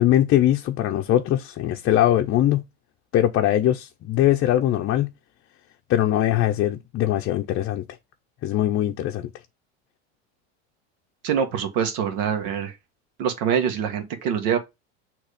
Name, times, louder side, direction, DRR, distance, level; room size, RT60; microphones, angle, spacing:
voice 1, 0.0-2.6 3.1-5.1 5.9-7.8 8.4-9.3, left 12 dB, 35° left, 0.7 m, -21 dB
voice 2, 11.2-12.7 13.2-14.6, right 8 dB, 70° right, 1.6 m, -24 dB
6.4 x 3.1 x 4.9 m
supercardioid pair, 110°, 36 cm